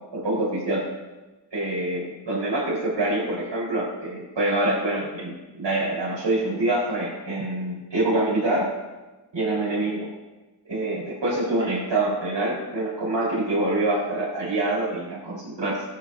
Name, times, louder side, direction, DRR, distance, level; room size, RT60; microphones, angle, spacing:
voice 1, 0.1-0.9 1.5-8.7 9.3-10.1 10.7-15.8, right 2 dB, 85° right, -7 dB, 4.7 m, -25 dB
23.0 x 11.5 x 2.8 m, 1.2 s
wide cardioid pair, 110°, 42 cm